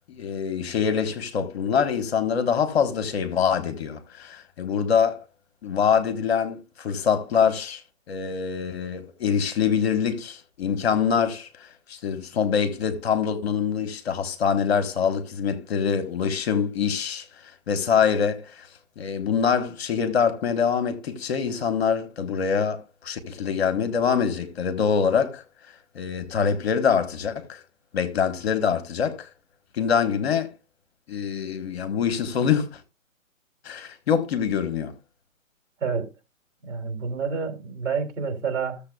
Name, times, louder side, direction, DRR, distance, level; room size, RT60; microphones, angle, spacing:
voice 1, 0.1-5.2 5.6-7.8 8.1-18.7 19.0-25.4 25.9-27.6 27.9-29.3 29.7-30.5 31.1-32.8 33.6-34.9, left 7 dB, 50° left, 1.5 m, -24 dB
voice 2, 36.6-38.8, right 5 dB, 60° right, 3.0 m, -28 dB
14.5 x 7.2 x 2.3 m
hypercardioid pair, 145°, 41 cm